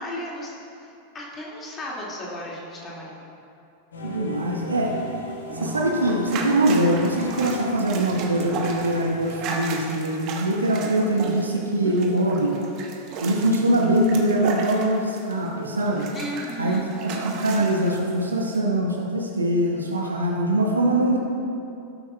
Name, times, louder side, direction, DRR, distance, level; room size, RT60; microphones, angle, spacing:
voice 1, 0.0-3.3 16.1-16.8, left 1 dB, 20° left, -4 dB, 2.2 m, -35 dB
sound 1, 3.9-9.4, left 1 dB, 65° left, 1.2 m, -37 dB
voice 2, 4.0-5.0 5.5-12.6 13.2-16.1 16.6-21.2, right 1 dB, 75° right, -1 dB, 1.2 m, -23 dB
sound 2, 5.5-15.5 15.8-18.0 18.5-18.6, right 4 dB, 40° right, 1.1 m, -34 dB
16.5 x 8.3 x 2.3 m, 2.7 s
figure-of-eight pair, 90°, 0 cm